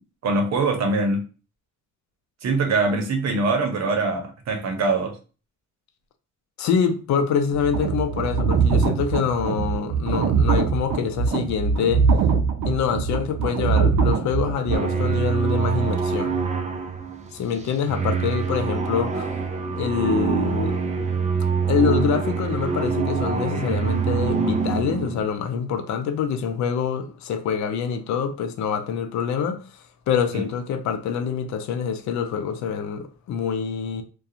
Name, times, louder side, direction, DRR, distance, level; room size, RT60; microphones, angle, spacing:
voice 1, 0.2-1.2 2.4-5.2 30.3-30.4, right 3 dB, 60° right, 0.8 m, -23 dB
voice 2, 6.6-12.1 12.7-16.4 17.3-19.3 19.7-20.8 21.7-29.6 30.1-34.0, left 7 dB, 70° left, 0.5 m, -25 dB
sound 1, 7.5-14.8, right 5 dB, 90° right, 0.5 m, -22 dB
sound 2, 14.7-25.2, right 6 dB, 25° right, 0.4 m, -25 dB
2.4 x 2.2 x 2.7 m
cardioid pair, 90°, 30 cm